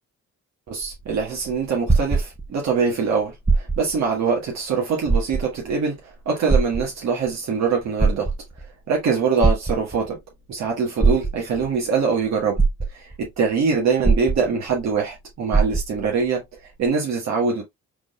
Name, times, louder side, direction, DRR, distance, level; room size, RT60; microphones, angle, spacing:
sound 1, 0.7-2.8 3.4-4.0 4.5-4.6 5.0-5.7 6.5-7.3 7.8-8.7 9.4-10.2 11.0-11.7 12.2-12.3 12.6-13.3 14.0-14.9 15.1-15.2 15.5-16.1 16.9-17.0, right 4 dB, 15° right, 1.1 m, -21 dB
voice 1, 0.7-8.3 8.9-10.2 10.5-12.6 12.9-17.6, right 5 dB, 65° right, 1.4 m, -23 dB
4.8 x 3.8 x 2.3 m
cardioid pair, 90°, 30 cm